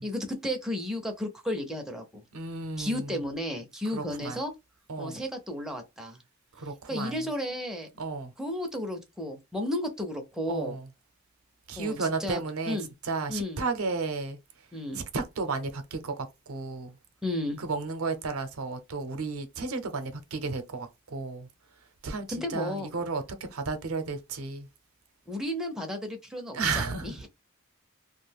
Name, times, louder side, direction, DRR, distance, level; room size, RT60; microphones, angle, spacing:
voice 1, 0.0-2.2 2.8-4.5 5.0-6.2 6.9-7.9 8.4-10.8 11.8-12.4 12.7-12.9 13.3-13.6 14.7-15.0 17.2-17.6 22.3-22.9 25.3-27.3, left 1 dB, 5° right, 0.5 m, -33 dB
voice 2, 2.3-3.1 3.9-4.4 4.9-5.2 6.6-7.3 8.0-8.3 10.5-10.9 11.7-12.8 13.0-14.4 14.9-16.9 17.6-21.5 22.0-23.2 23.5-24.7 26.5-27.1, right 4 dB, 85° right, 0.6 m, -33 dB
2.4 x 2.1 x 3.3 m
head